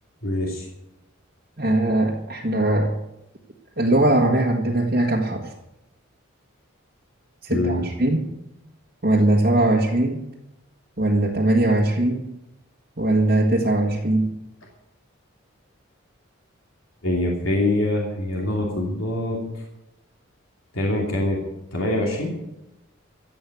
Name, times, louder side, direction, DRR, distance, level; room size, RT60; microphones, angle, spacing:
voice 1, 0.2-0.7 7.5-7.8 17.0-19.6 20.7-21.4 21.7-22.4, left 1 dB, 75° left, -1 dB, 2.9 m, -24 dB
voice 2, 1.6-2.9 3.8-5.5 7.4-8.3 9.0-10.2 11.0-12.3 13.0-14.4, right 1 dB, 45° right, -2 dB, 1.6 m, -20 dB
15.0 x 7.8 x 8.2 m, 0.91 s
head